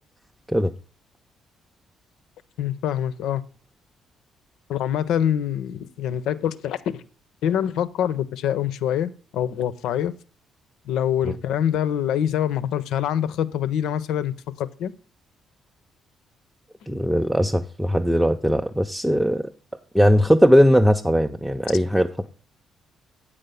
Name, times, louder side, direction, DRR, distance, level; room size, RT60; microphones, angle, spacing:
voice 1, 2.6-3.4 4.7-7.0 7.4-10.1 10.9-14.9, left 10 dB, 60° left, 0.4 m, -25 dB
voice 2, 16.9-19.5 19.9-22.3, equal, 5° right, 0.4 m, -19 dB
8.3 x 5.0 x 5.5 m
figure-of-eight pair, 45°, 0 cm